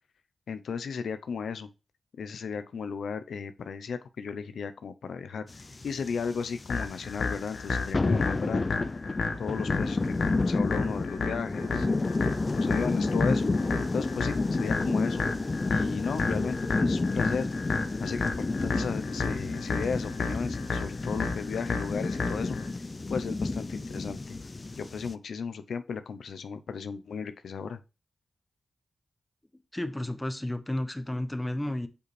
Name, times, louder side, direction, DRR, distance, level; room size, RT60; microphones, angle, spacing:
voice 1, 0.5-1.7 2.2-8.8 9.4-12.1 12.5-13.5 13.9-15.2 15.7-17.7 18.0-22.6 23.1-24.4 24.8-27.8, left 6 dB, 90° left, 0.6 m, -35 dB
sound 1, 5.5-25.1, left 3 dB, 35° left, 0.5 m, -30 dB
sound 2, 6.7-22.7, left 4 dB, 75° left, 1.1 m, -33 dB
voice 2, 29.7-31.9, left 1 dB, 10° left, 1.0 m, -32 dB
6.8 x 5.1 x 3.2 m
cardioid pair, 75°, 0 cm